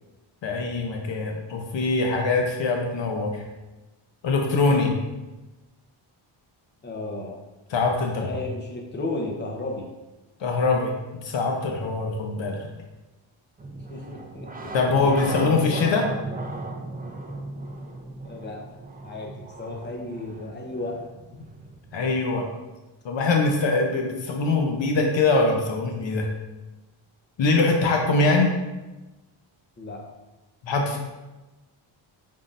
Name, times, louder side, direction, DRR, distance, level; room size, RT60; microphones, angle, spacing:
voice 1, 0.4-3.4 4.2-4.9 7.7-8.2 10.4-10.9 11.2-12.7 14.7-16.1 21.9-22.5 23.0-26.3 27.4-28.5 30.6-31.0, left 3 dB, 60° left, 2 dB, 0.8 m, -23 dB
voice 2, 6.8-7.4 8.2-9.9 13.7-14.7 18.2-18.6 19.0-21.0 29.8-30.0, left 2 dB, 20° left, 0 dB, 0.8 m, -34 dB
sound 1, 13.6-22.3, right 2 dB, 20° right, 0.5 m, -36 dB
5.2 x 3.7 x 2.5 m, 1.1 s
cardioid pair, 80°, 49 cm